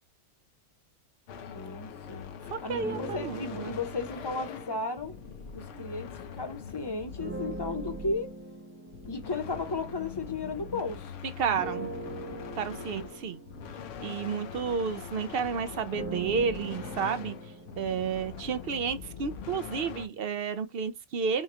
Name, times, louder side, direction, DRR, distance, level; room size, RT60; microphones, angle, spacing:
sound 1, 1.3-8.5 8.9-20.1, left 6 dB, 70° left, 1.0 m, -43 dB
voice 1, 1.5-2.3 2.6-5.1 5.5-8.3 9.0-11.1, left 3 dB, 25° left, 0.8 m, -34 dB
voice 2, 2.5-3.7 11.4-11.9 12.6-13.4 14.0-17.4 17.8-21.4, right 6 dB, 60° right, 0.6 m, -31 dB
sound 2, 2.8-6.4 7.2-11.0 11.5-19.5, right 3 dB, 15° right, 0.6 m, -43 dB
5.6 x 2.3 x 2.8 m
omnidirectional pair, 1.4 m